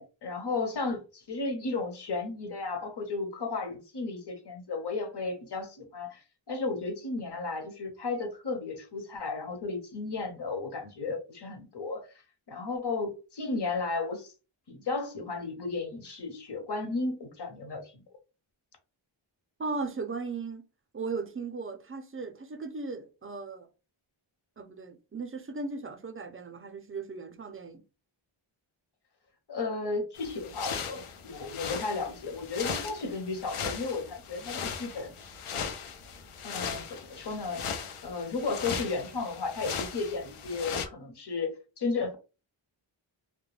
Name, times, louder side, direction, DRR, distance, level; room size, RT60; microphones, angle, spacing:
voice 1, 0.0-12.1 12.5-14.3 14.7-18.0 29.5-35.1 36.4-37.6 38.0-42.1, left 3 dB, 50° left, 0.9 m, -34 dB
voice 2, 19.6-20.7 20.9-23.7 24.6-27.8, right 4 dB, 25° right, 0.5 m, -37 dB
sound 1, 30.2-40.9, left 6 dB, 80° left, 0.6 m, -38 dB
2.2 x 2.1 x 3.1 m
wide cardioid pair, 60°, 50 cm